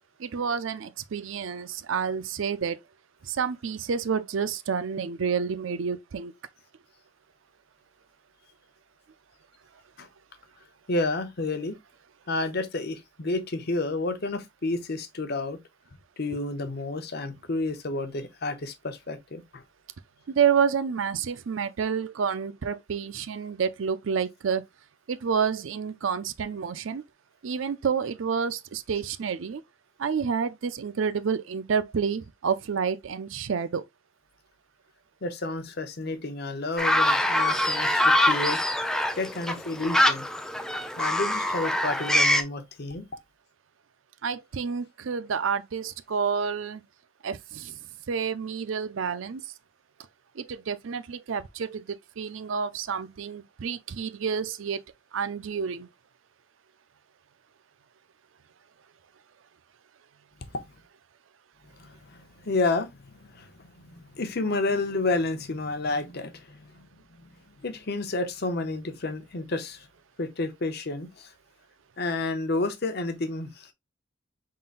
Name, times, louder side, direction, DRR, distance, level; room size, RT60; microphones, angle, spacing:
voice 1, 0.2-2.8 3.2-6.3 20.3-24.6 25.1-27.0 27.4-29.6 30.0-33.8 44.2-46.8 47.2-47.8 48.1-49.4 50.4-54.8 55.1-55.9 64.4-64.6, right 6 dB, 70° right, 0.5 m, -29 dB
voice 2, 10.9-11.8 12.3-15.6 16.2-19.6 35.2-40.3 41.0-43.1 61.8-62.0 62.4-62.9 63.3-63.5 63.9-66.7 67.6-69.9 70.2-71.3 72.0-73.7, left 2 dB, 50° left, 0.8 m, -30 dB
sound 1, 36.8-42.4, left 1 dB, 5° left, 0.4 m, -24 dB
5.4 x 3.8 x 2.4 m
head